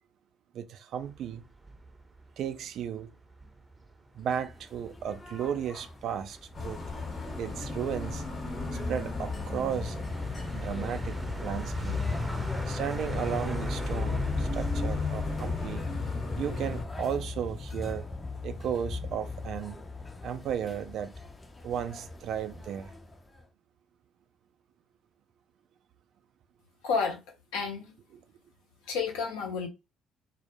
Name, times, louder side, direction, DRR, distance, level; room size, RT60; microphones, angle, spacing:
voice 1, 0.5-1.4 2.4-3.1 4.2-6.8 7.4-8.3 8.7-10.0 10.5-12.0 12.7-15.9 16.4-18.1 18.4-19.8 20.2-21.1 21.6-22.9, right 8 dB, 60° right, 0.3 m, -34 dB
sound 1, 0.9-15.8, right 2 dB, 15° right, 0.6 m, -42 dB
sound 2, 4.3-23.4, left 3 dB, 25° left, 0.5 m, -40 dB
sound 3, 6.5-16.8, left 4 dB, 45° left, 0.9 m, -35 dB
voice 2, 26.8-27.2 27.5-27.9 28.8-29.7, left 5 dB, 75° left, 0.6 m, -30 dB
2.1 x 2.0 x 2.9 m
hypercardioid pair, 50°, 0 cm